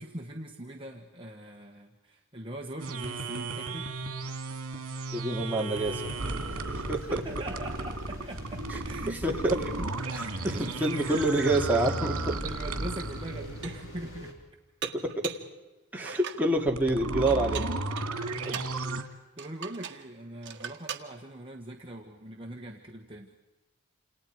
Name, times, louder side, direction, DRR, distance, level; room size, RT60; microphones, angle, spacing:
voice 1, 0.0-3.9 7.1-9.9 10.2-11.7 12.4-14.3 18.4-19.1 19.4-23.3, right 1 dB, 25° right, 1 dB, 1.5 m, -42 dB
sound 1, 2.8-13.6 16.6-19.0, right 3 dB, 75° right, 2.4 m, -35 dB
voice 2, 5.1-6.1 6.7-7.2 9.2-9.7 10.1-12.4 14.8-15.3 15.9-17.6 18.5-18.6, right 1 dB, 10° right, -1 dB, 2.5 m, -27 dB
sound 2, 5.8-14.3, equal, 60° left, 4.6 m, -43 dB
Dishes pots and pans, 12.7-12.8 13.3-13.9 14.8-15.5 16.0-16.5 17.3-18.8 19.4-20.1 20.4-21.1, right 8 dB, 55° right, 1.6 m, -40 dB
29.5 x 27.5 x 4.8 m, 1.1 s
head